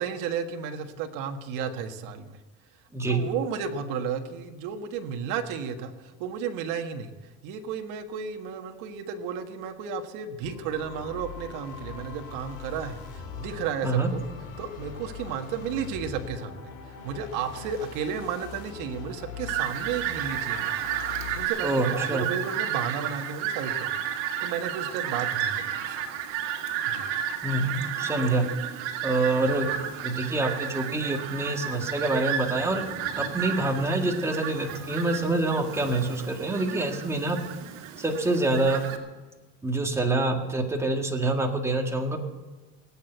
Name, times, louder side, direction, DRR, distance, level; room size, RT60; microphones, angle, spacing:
voice 1, 0.0-2.4 3.1-7.1 7.4-14.2 14.6-16.7 17.0-24.1 24.4-26.0 26.9-27.1, right 7 dB, 65° right, 5 dB, 1.5 m, -33 dB
sound 1, 10.4-21.4, left 6 dB, 55° left, 3.1 m, -41 dB
Fowl, 19.5-39.0, right 9 dB, 80° right, 2.1 m, -32 dB
voice 2, 21.6-22.3 27.4-28.4 29.0-29.7 30.0-32.8 33.2-37.4 38.0-38.8 39.6-42.2, right 2 dB, 10° right, 3 dB, 1.7 m, -26 dB
18.5 x 8.5 x 8.0 m, 1.2 s
cardioid pair, 145°, 35 cm